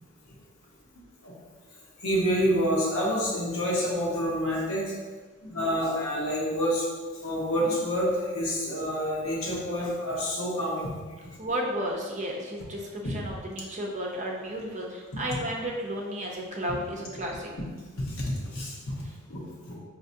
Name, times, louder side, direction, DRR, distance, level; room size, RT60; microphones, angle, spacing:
voice 1, 2.0-4.9 5.4-6.8 7.2-10.9 18.2-18.3 18.5-19.0 19.3-19.4 19.7-19.8, equal, 70° left, -4 dB, 1.1 m, -27 dB
voice 2, 11.4-17.5 19.0-19.1, equal, 35° right, -1 dB, 0.6 m, -33 dB
5.5 x 2.9 x 2.7 m, 1.4 s
head